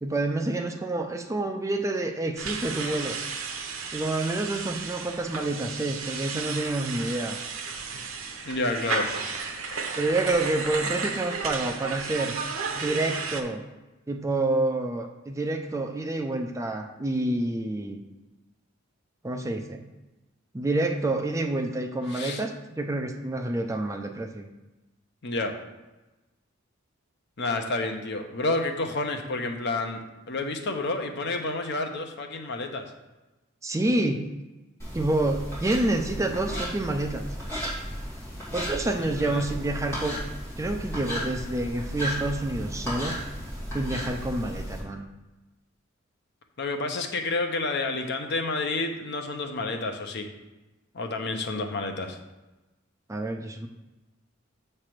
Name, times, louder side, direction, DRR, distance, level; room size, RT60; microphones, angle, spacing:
voice 1, 0.0-3.2 3.9-7.4 10.0-12.4 12.7-13.6 14.1-18.0 19.2-19.8 20.5-24.5 33.6-34.3 34.9-37.2 38.5-40.2 40.6-43.2 43.7-45.1 53.1-53.7, right 2 dB, 15° right, 4 dB, 0.5 m, -28 dB
sound 1, 2.4-13.4, right 4 dB, 90° right, 0.8 m, -33 dB
voice 2, 8.4-9.1 22.1-22.4 25.2-25.5 27.4-32.8 38.9-39.4 46.6-50.3 50.9-52.2, left 2 dB, 60° left, 5 dB, 0.8 m, -30 dB
sound 2, 34.8-44.8, equal, 15° left, 2.4 m, -34 dB
7.3 x 3.3 x 5.9 m, 1.1 s
head